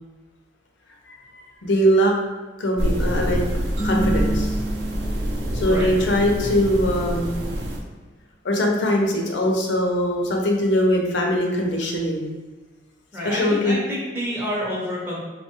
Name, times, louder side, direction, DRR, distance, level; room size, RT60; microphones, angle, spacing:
voice 1, 1.6-2.1 2.6-3.4 3.8-4.5 5.5-7.4 8.4-12.3 13.2-13.8, equal, 75° left, 0 dB, 0.5 m, -21 dB
sound 1, 2.8-7.8, equal, 65° right, 0.5 m, -26 dB
sound 2, 3.8-6.4, right 1 dB, 90° right, 0.8 m, -29 dB
voice 2, 13.1-15.2, equal, 10° right, -5 dB, 0.5 m, -28 dB
2.9 x 2.2 x 2.8 m, 1.3 s
head